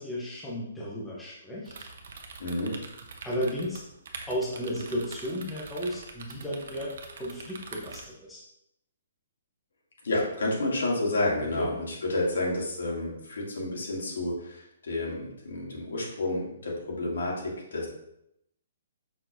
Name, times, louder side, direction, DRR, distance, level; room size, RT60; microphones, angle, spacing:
voice 1, 0.0-1.9 3.2-3.8 4.3-8.4 11.6-11.7, equal, 5° left, -7 dB, 0.7 m, -34 dB
sound 1, 1.6-8.1, right 4 dB, 50° right, 0.8 m, -44 dB
voice 2, 2.4-2.8 10.0-17.9, left 2 dB, 80° left, -3 dB, 2.4 m, -30 dB
6.7 x 5.9 x 2.6 m, 0.80 s
hypercardioid pair, 180°, 0 cm